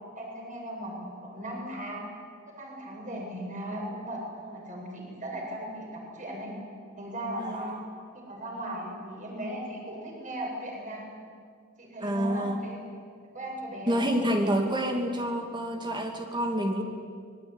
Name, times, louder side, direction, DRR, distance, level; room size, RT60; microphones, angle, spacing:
voice 1, 0.1-2.0 2.5-6.5 7.0-7.8 8.1-11.0 11.8-12.8 13.3-14.1, right 1 dB, 40° right, -1 dB, 7.7 m, -37 dB
voice 2, 7.4-7.8 12.0-12.6 13.9-16.8, equal, 20° right, 3 dB, 2.7 m, -28 dB
24.5 x 21.5 x 9.9 m, 2.1 s
head